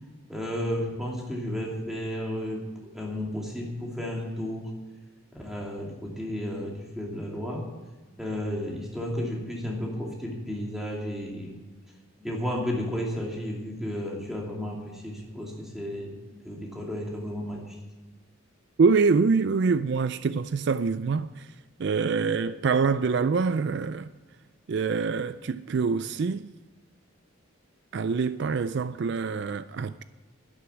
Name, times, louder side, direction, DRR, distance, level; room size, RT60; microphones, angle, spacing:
voice 1, 0.3-2.6 2.9-4.7 5.3-7.7 8.2-11.6 12.2-17.8, equal, ahead, 2.5 m, -33 dB
voice 2, 18.8-21.5 21.8-24.1 24.7-26.5 27.9-30.0, right 5 dB, 55° right, 0.3 m, -25 dB
11.5 x 11.0 x 7.0 m
head